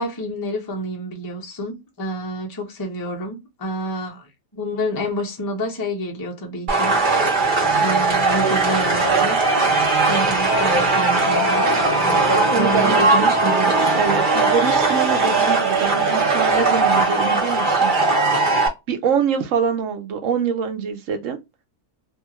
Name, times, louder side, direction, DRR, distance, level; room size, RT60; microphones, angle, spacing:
voice 1, 0.0-4.3 4.5-7.4 7.8-9.4 10.1-11.7 12.5-13.7, equal, 30° left, 0.4 m, -28 dB
sound 1, 6.7-18.7, right 3 dB, 40° right, 0.9 m, -18 dB
voice 2, 12.5-13.1 13.5-17.9 18.9-21.4, right 7 dB, 65° right, 0.8 m, -24 dB
2.7 x 2.4 x 2.8 m
omnidirectional pair, 1.7 m